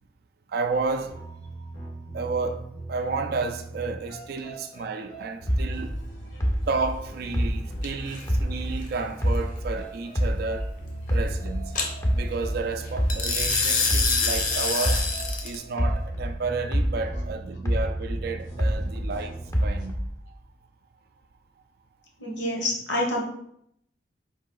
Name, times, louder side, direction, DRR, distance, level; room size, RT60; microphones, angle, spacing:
voice 1, 0.5-1.2 2.1-6.0 6.7-10.7 11.1-11.7 12.1-15.1 15.4-20.0, right 4 dB, 50° right, 0.3 m, -31 dB
sound 1, 1.1-19.9, right 2 dB, 90° left, 1.6 m, -40 dB
sound 2, 5.5-8.9 9.2-11.7 12.0-16.4 16.7-19.2 19.5-20.2, equal, 15° left, 0.4 m, -26 dB
sound 3, 7.8-8.2 11.8-11.9 13.1-15.6, left 4 dB, 45° left, 0.7 m, -25 dB
voice 2, 22.2-23.2, left 1 dB, 70° left, 1.2 m, -27 dB
4.6 x 2.7 x 3.8 m
head